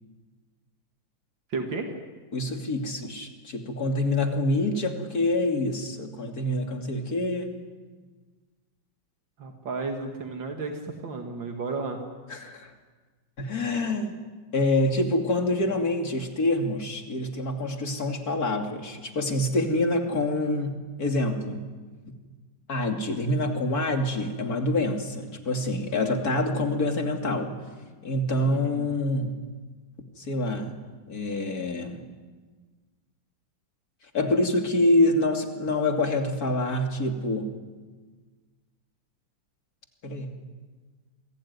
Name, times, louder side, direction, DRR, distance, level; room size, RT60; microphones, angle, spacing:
voice 1, 1.5-1.9 9.4-12.0 28.4-28.9, right 4 dB, 85° right, 3 dB, 2.8 m, -33 dB
voice 2, 2.3-7.5 12.3-12.7 13.4-14.1 14.5-21.7 22.7-27.6 28.0-29.3 30.2-30.7 31.1-32.0 34.1-37.5 40.0-40.4, left 1 dB, 55° left, 4 dB, 3.1 m, -26 dB
29.0 x 21.0 x 9.7 m, 1.4 s
omnidirectional pair, 2.0 m